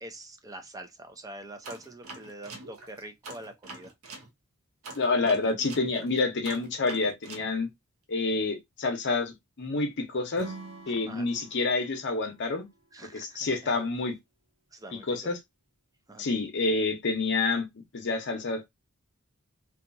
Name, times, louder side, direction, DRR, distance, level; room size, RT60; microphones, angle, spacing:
voice 1, 0.0-3.9 10.9-11.3 12.9-13.7 14.7-15.1 16.1-16.3, right 1 dB, 15° right, 0.5 m, -45 dB
sound 1, 1.6-4.3 4.8-7.5, right 3 dB, 70° right, 0.7 m, -44 dB
voice 2, 4.9-7.7 8.1-10.5 10.9-12.7 13.1-14.1 14.9-15.4 16.2-17.6 17.9-18.7, left 3 dB, 55° left, 0.7 m, -28 dB
Acoustic guitar / Strum, 10.3-13.6, right 3 dB, 90° right, 1.3 m, -45 dB
2.8 x 2.3 x 2.5 m
head